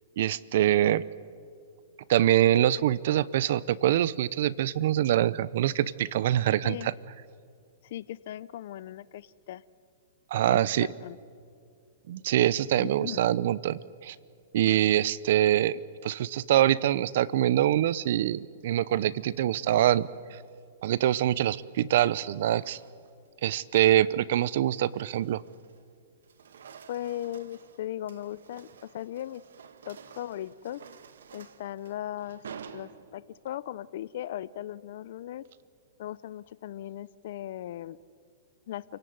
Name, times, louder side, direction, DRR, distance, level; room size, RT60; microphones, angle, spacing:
voice 1, 0.2-1.0 2.1-6.9 10.3-10.9 12.1-14.2 14.5-20.4 20.8-22.8 23.4-25.4, right 12 dB, 60° right, 20 dB, 0.7 m, -24 dB
voice 2, 7.8-9.6 10.5-11.2 12.8-13.2 26.9-29.4 29.8-30.8 31.3-32.4 32.7-35.4 36.0-38.0 38.7-38.8, left 12 dB, 60° left, 17 dB, 0.6 m, -38 dB
sound 1, 20.1-20.6 21.7-23.3 23.7-24.0 24.5-25.9 26.2-33.5, right 7 dB, 80° right, 1.5 m, -51 dB
28.5 x 17.5 x 9.5 m, 2.2 s
hypercardioid pair, 135°, 0 cm